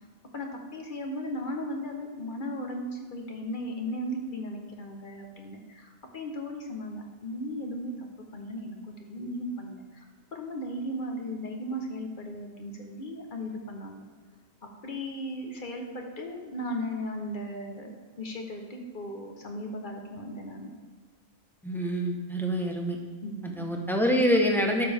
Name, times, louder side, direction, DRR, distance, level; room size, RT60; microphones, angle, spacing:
voice 1, 0.3-10.0 10.3-14.0 14.8-20.7 23.2-23.7, equal, 45° left, 2 dB, 1.3 m, -36 dB
voice 2, 21.6-23.0 23.4-24.8, equal, ahead, 1 dB, 1.0 m, -26 dB
12.5 x 6.9 x 3.6 m, 1.5 s
omnidirectional pair, 1.2 m